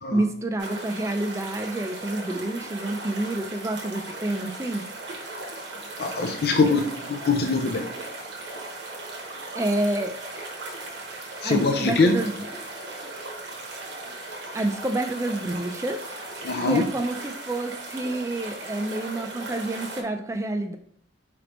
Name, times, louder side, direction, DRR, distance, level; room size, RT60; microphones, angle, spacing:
voice 1, 0.1-4.9 9.5-10.2 11.4-12.5 14.5-16.0 16.6-20.8, right 2 dB, 15° right, 5 dB, 0.4 m, -28 dB
sound 1, 0.6-20.0, right 2 dB, 75° right, 1.0 m, -37 dB
voice 2, 6.0-7.9 11.4-12.2 16.4-16.9, left 3 dB, 55° left, 4 dB, 0.4 m, -23 dB
5.0 x 3.3 x 2.9 m, 0.67 s
head